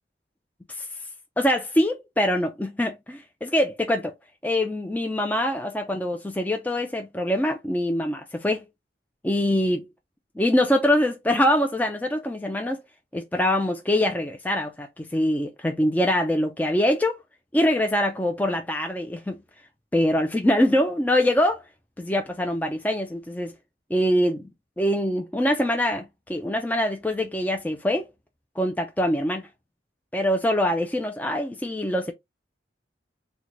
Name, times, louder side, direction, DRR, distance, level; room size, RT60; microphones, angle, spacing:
voice 1, 1.4-4.1 4.4-8.6 9.2-9.8 10.4-12.8 13.1-17.2 17.5-19.4 19.9-21.6 22.0-23.6 23.9-24.4 24.8-28.1 28.6-29.5 30.1-32.1, left 1 dB, 10° left, 0.3 m, -24 dB
3.8 x 2.2 x 3.1 m
head